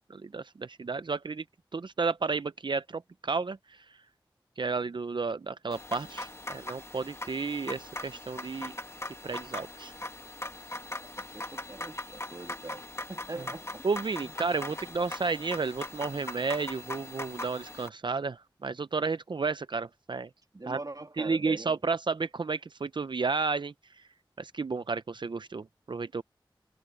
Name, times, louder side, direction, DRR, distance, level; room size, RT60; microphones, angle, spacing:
voice 1, 0.1-1.4 1.7-3.8 4.6-8.7 9.2-9.9 13.8-20.3 20.7-20.8 21.2-23.7 24.4-26.2, right 4 dB, 65° right, 0.5 m, -32 dB
sound 1, 5.7-17.9, left 1 dB, 30° left, 2.1 m, -40 dB
voice 2, 11.0-12.8 13.1-13.8 14.2-14.4 20.5-21.8, right 2 dB, 45° right, 2.5 m, -42 dB
wide cardioid pair, 45°, 9 cm